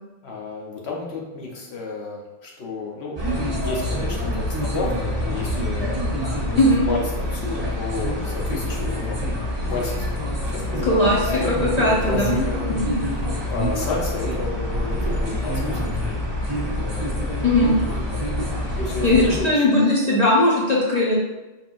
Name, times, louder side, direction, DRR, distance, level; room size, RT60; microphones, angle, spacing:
voice 1, 0.2-6.6 6.8-9.3 9.6-12.8 13.0-16.2 16.8-18.2 18.7-19.6, left 3 dB, 80° left, -2 dB, 1.2 m, -32 dB
sound 1, 3.2-19.4, left 1 dB, 30° right, 0.7 m, -26 dB
voice 2, 10.8-11.2 11.4-12.4 17.4-17.8 19.0-21.2, left 1 dB, 45° left, -6 dB, 0.8 m, -18 dB
4.4 x 3.7 x 2.5 m, 1.1 s
omnidirectional pair, 1.1 m